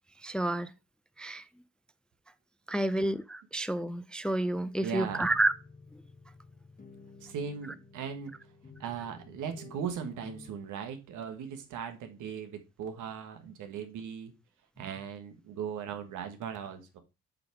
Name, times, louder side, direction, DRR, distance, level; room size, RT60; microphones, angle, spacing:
voice 1, 0.2-0.7 1.2-1.4 2.7-5.5, right 1 dB, 5° left, 0.4 m, -30 dB
sound 1, 4.6-10.5, left 3 dB, 25° left, 1.3 m, -52 dB
voice 2, 4.8-5.3 7.2-8.4 8.8-14.3 14.8-17.0, right 7 dB, 80° right, 1.4 m, -38 dB
7.7 x 3.5 x 4.5 m
cardioid pair, 90°, 30 cm